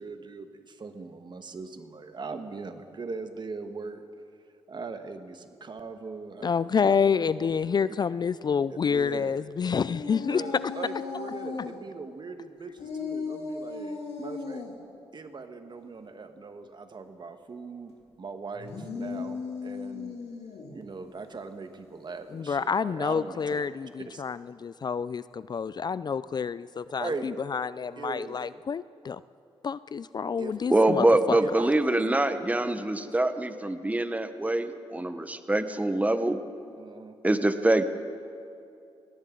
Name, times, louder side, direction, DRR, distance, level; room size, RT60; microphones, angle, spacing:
voice 1, 0.0-4.0 4.7-7.6 8.7-9.3 10.3-14.6 15.1-17.9 18.2-20.2 20.7-23.6 24.0-24.2 27.0-27.3 28.0-28.4 30.4-30.5 31.4-33.1 36.8-37.1, right 4 dB, 45° right, 8 dB, 1.4 m, -40 dB
voice 2, 6.4-10.4 22.3-29.2 29.6-31.4, left 6 dB, 40° left, 17 dB, 0.4 m, -28 dB
sound 1, 9.8-11.8 12.8-14.7 18.5-20.8, left 5 dB, 75° left, 2.7 m, -36 dB
voice 3, 30.7-36.4 37.2-37.9, right 1 dB, 15° right, 10 dB, 1.1 m, -24 dB
21.5 x 17.5 x 3.9 m, 2.6 s
cardioid pair, 60°, 11 cm